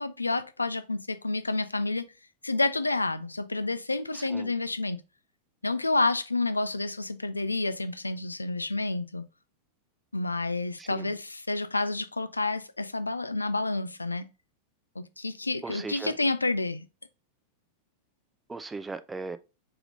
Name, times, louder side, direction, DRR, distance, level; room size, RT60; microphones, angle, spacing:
voice 1, 0.0-2.1 2.4-5.0 5.6-9.2 10.1-14.3 15.0-16.8, left 2 dB, 80° left, 0.3 m, -29 dB
voice 2, 4.1-4.5 10.8-11.2 15.6-16.2 18.5-19.4, right 4 dB, 10° right, 0.4 m, -38 dB
3.5 x 3.3 x 3.7 m
figure-of-eight pair, 90°, 0 cm